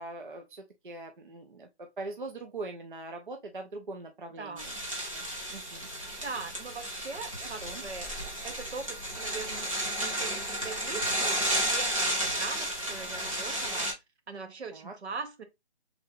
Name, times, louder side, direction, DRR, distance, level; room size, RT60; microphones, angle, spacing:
voice 1, 0.0-4.8 5.1-5.3 5.5-5.9 7.4-7.8 14.7-14.9, right 2 dB, 50° right, 0.5 m, -42 dB
voice 2, 4.4-4.7 6.2-8.2 8.4-9.7 10.0-13.9 14.3-15.4, right 4 dB, 75° right, 0.8 m, -41 dB
sound 1, 4.6-13.9, right 1 dB, 30° right, 0.9 m, -32 dB
3.4 x 2.3 x 3.3 m
hypercardioid pair, 175°, 34 cm